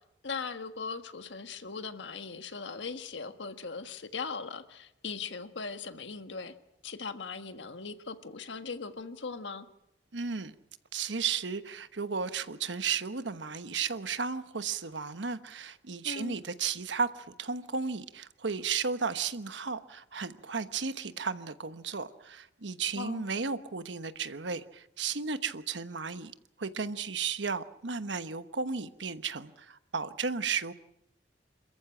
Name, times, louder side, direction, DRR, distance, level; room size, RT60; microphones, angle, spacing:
voice 1, 0.2-6.5 6.8-9.7 16.0-16.4 22.9-23.3, left 4 dB, 85° left, 1.6 m, -39 dB
voice 2, 10.1-10.5 10.9-26.3 26.6-30.7, right 5 dB, 85° right, 1.1 m, -34 dB
27.5 x 14.5 x 9.0 m
head